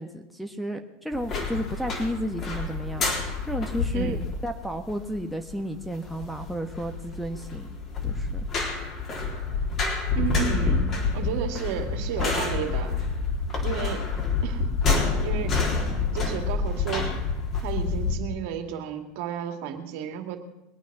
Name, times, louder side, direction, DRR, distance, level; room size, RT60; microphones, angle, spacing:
voice 1, 0.0-3.0 3.5-7.7 8.0-8.5, equal, ahead, 7 dB, 1.3 m, -32 dB
sound 1, 1.1-18.1, left 4 dB, 40° left, 3.8 m, -28 dB
voice 2, 3.9-4.2 10.1-13.0 13.6-14.1 14.4-14.7 15.2-15.6 16.1-17.1 17.6-20.4, right 9 dB, 65° right, 5 dB, 2.2 m, -32 dB
22.0 x 9.2 x 6.1 m, 0.91 s
hypercardioid pair, 105°, 0 cm